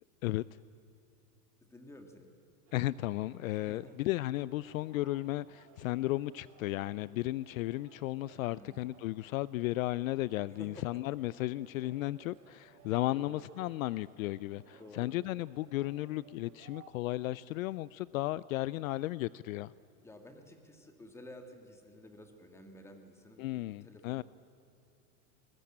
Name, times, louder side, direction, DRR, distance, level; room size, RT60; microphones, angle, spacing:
voice 1, 1.6-2.3 3.7-4.0 8.4-9.0 10.5-11.0 13.1-13.4 14.7-15.1 20.0-24.2, left 1 dB, 5° left, 5 dB, 1.9 m, -52 dB
voice 2, 2.7-19.7 23.4-24.2, left 17 dB, 60° left, 19 dB, 0.5 m, -34 dB
sound 1, 2.7-16.9, right 8 dB, 50° right, 2.7 m, -62 dB
24.0 x 22.0 x 8.7 m, 2.8 s
supercardioid pair, 160°, 46 cm